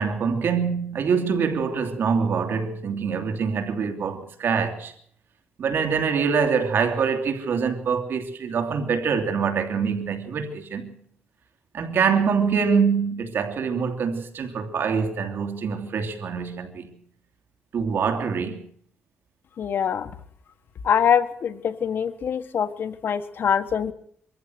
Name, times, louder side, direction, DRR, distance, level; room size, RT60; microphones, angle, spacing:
voice 1, 0.0-4.9 5.6-10.9 11.7-17.0 17.7-18.6, right 6 dB, 65° right, 3.0 m, -25 dB
voice 2, 19.6-20.1 20.8-23.9, left 8 dB, 60° left, 1.5 m, -24 dB
24.0 x 14.5 x 8.1 m
cardioid pair, 125°, 4 cm